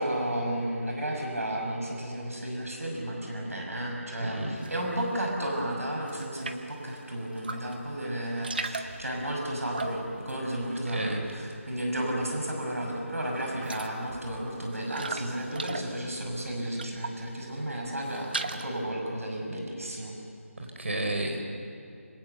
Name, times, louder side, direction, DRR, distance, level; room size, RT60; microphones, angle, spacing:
voice 1, 0.0-20.1, right 1 dB, 75° right, 0 dB, 6.1 m, -33 dB
voice 2, 4.2-4.6 10.7-11.3 20.6-21.4, right 1 dB, 55° right, 3 dB, 4.7 m, -32 dB
sound 1, 4.6-5.2 5.6-6.8 7.3-7.9 8.1-11.6 11.8-12.5 12.9-13.0 13.3-17.3 17.7-18.8, right 3 dB, 40° right, 1.2 m, -39 dB
27.0 x 26.0 x 6.9 m, 2.5 s
figure-of-eight pair, 165°, 8 cm